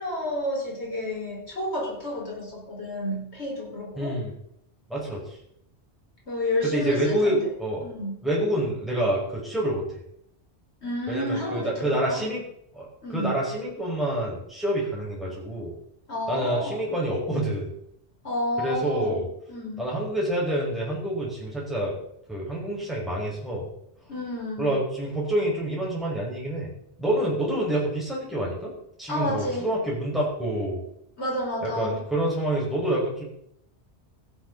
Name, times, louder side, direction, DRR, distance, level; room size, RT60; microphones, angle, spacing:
voice 1, 0.0-4.2 6.3-7.4 7.8-8.2 10.8-12.3 13.0-13.4 16.1-16.8 18.2-19.2 19.5-19.9 24.1-24.7 29.1-29.7 31.2-32.0, left 1 dB, 70° left, -3 dB, 5.4 m, -30 dB
voice 2, 4.0-4.3 4.9-5.2 6.6-7.8 8.2-9.8 11.1-12.4 12.7-15.7 16.3-17.7 18.6-19.3 19.8-21.9 22.3-23.6 24.6-26.7 27.0-28.7 29.0-30.8 31.6-33.2, right 1 dB, ahead, -5 dB, 5.5 m, -27 dB
16.0 x 12.0 x 4.1 m, 0.74 s
omnidirectional pair, 1.2 m